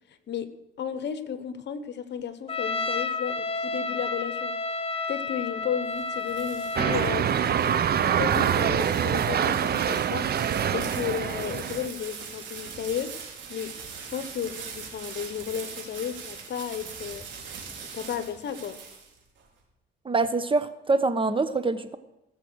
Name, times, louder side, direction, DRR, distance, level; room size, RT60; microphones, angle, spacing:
voice 1, 0.8-4.6 5.1-7.4 8.0-10.3 10.7-13.2 13.5-17.3 17.8-18.8, left 8 dB, 60° left, 11 dB, 1.2 m, -33 dB
Trumpet, 2.5-7.2, left 3 dB, 30° left, 1.0 m, -31 dB
sound 1, 5.6-19.4, right 6 dB, 70° right, 4.2 m, -42 dB
sound 2, 6.8-11.9, right 8 dB, 55° right, 0.8 m, -25 dB
voice 2, 20.0-22.0, right 3 dB, 25° right, 12 dB, 1.0 m, -25 dB
18.0 x 7.6 x 6.4 m, 0.93 s
cardioid pair, 90°, 20 cm